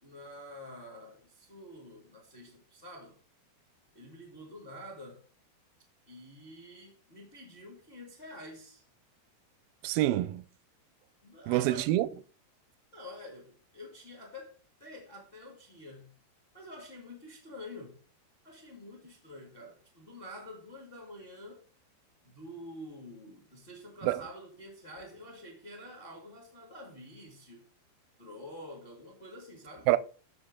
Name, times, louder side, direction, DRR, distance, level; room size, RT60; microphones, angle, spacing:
voice 1, 0.0-3.2 3.9-5.2 6.1-8.8 11.2-11.9 12.9-16.1 16.5-18.0 18.4-21.6 22.2-27.7 28.2-29.9, left 1 dB, 25° left, 1.2 m, -48 dB
voice 2, 9.8-10.4 11.5-12.1 24.0-24.2 29.9-30.0, right 16 dB, 80° right, 2.2 m, -26 dB
13.5 x 4.4 x 3.7 m
omnidirectional pair, 4.7 m